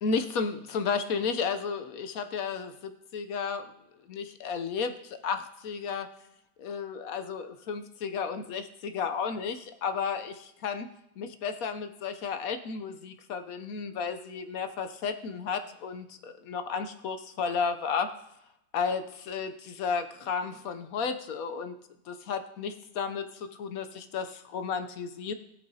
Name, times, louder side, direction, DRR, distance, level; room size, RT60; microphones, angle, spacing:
voice 1, 0.0-3.7 4.1-6.1 6.6-10.9 11.2-18.1 18.7-19.0 19.3-21.8 22.1-25.3, left 5 dB, 65° left, 8 dB, 0.9 m, -33 dB
20.0 x 6.7 x 2.7 m, 0.84 s
omnidirectional pair, 2.0 m